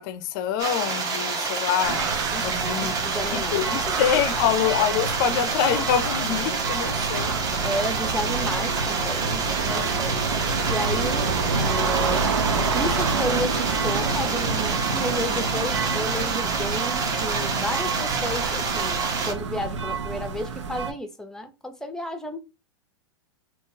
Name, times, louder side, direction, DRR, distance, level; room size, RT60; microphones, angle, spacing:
voice 1, 0.0-2.1 2.4-2.9 3.3-7.4 9.6-10.0, left 9 dB, 50° left, 0.5 m, -25 dB
sound 1, 0.6-19.3, right 4 dB, 25° right, 0.8 m, -28 dB
sound 2, 1.8-20.9, right 4 dB, 90° right, 0.7 m, -28 dB
voice 2, 2.3-3.8 4.3-4.4 7.6-10.2 10.7-12.3 12.7-22.4, left 1 dB, 5° left, 0.6 m, -32 dB
3.6 x 2.8 x 2.7 m
hypercardioid pair, 125°, 15 cm